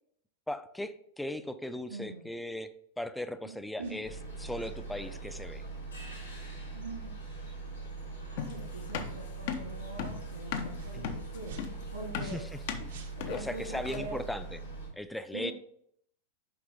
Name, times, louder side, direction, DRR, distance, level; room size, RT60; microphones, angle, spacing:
voice 1, 0.5-5.6 10.9-11.2 12.2-12.6 13.3-14.6 14.9-15.5, left 1 dB, 5° left, 11 dB, 0.4 m, -38 dB
voice 2, 1.9-2.2 3.4-3.5 3.8-4.0 6.7-7.2 8.2-12.4 13.2-14.2 15.3-15.5, right 2 dB, 75° right, -2 dB, 2.1 m, -43 dB
sound 1, 3.8-4.0 4.6-4.9 5.4-5.6 6.2-6.3 6.9-7.2 7.8-8.0 8.6-8.8 9.2-9.4 10.0-10.2 10.7-11.0 11.4-12.6 12.8-13.5, right 5 dB, 60° right, 0.8 m, -52 dB
sound 2, 4.0-14.9, right 3 dB, 85° left, 2.5 m, -42 dB
sound 3, 8.4-14.2, left 7 dB, 50° left, 0.7 m, -37 dB
6.8 x 5.0 x 3.6 m, 0.68 s
figure-of-eight pair, 90°, 0 cm